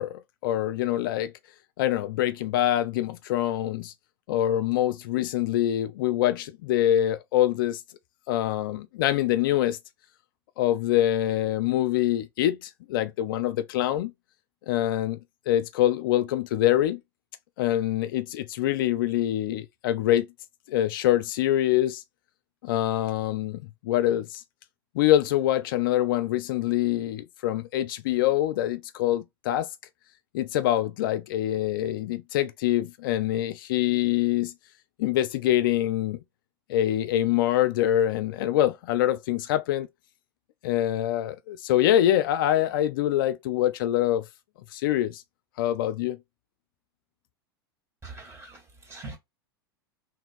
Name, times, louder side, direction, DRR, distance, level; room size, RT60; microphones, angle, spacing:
voice 1, 0.0-1.3 1.8-3.9 4.3-7.8 8.3-9.8 10.6-14.1 14.7-15.2 15.5-17.0 17.6-20.3 20.7-22.0 22.6-24.4 24.9-29.7 30.3-34.5 35.0-36.2 36.7-39.9 40.6-44.2 44.7-45.2 45.6-46.2, left 12 dB, 60° left, 0.4 m, -25 dB
voice 2, 48.0-49.2, right 3 dB, 20° right, 2.6 m, -42 dB
3.4 x 2.6 x 3.9 m
hypercardioid pair, 90°, 13 cm